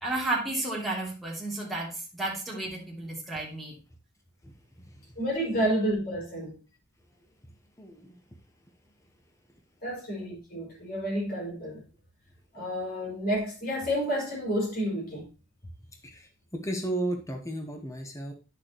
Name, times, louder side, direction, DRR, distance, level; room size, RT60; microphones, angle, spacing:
voice 1, 0.0-3.7, right 2 dB, ahead, 2.6 m, -32 dB
voice 2, 4.4-5.1 7.4-7.5 7.8-8.2 16.1-18.3, right 1 dB, 15° left, 1.1 m, -35 dB
voice 3, 5.2-6.6 9.8-11.8 12.5-15.3, equal, 50° left, 5.6 m, -30 dB
9.9 x 6.5 x 3.0 m
head